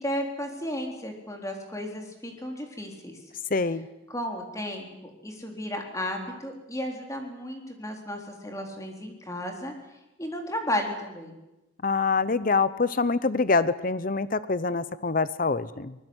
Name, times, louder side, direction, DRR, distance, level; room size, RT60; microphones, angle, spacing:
voice 1, 0.0-3.2 4.1-9.7 10.2-11.3, left 1 dB, 15° left, 3 dB, 3.9 m, -34 dB
voice 2, 3.5-3.9 11.8-15.9, left 4 dB, 45° left, 16 dB, 0.7 m, -25 dB
24.5 x 20.5 x 8.0 m, 0.96 s
head